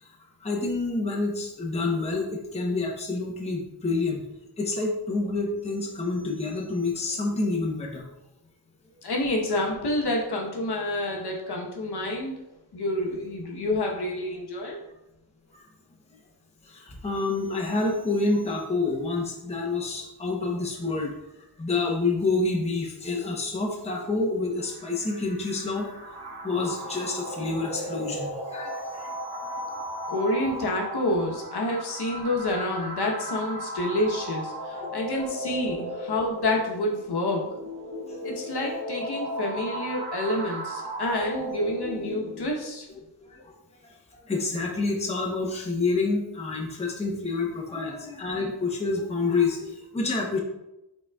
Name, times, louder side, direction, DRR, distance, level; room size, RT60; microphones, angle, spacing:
voice 1, 0.4-4.2 4.6-8.1 16.7-21.1 21.6-25.9 26.4-29.9 34.7-35.2 38.2-38.4 43.3-43.5 44.3-50.4, left 3 dB, 15° left, -2 dB, 0.8 m, -28 dB
voice 2, 9.0-12.3 12.7-14.8 30.1-37.4 38.2-42.9, left 1 dB, 65° left, -1 dB, 1.0 m, -28 dB
sound 1, 24.6-42.6, equal, 65° right, 1.6 m, -36 dB
5.8 x 4.0 x 2.3 m, 0.91 s
wide cardioid pair, 125°, 43 cm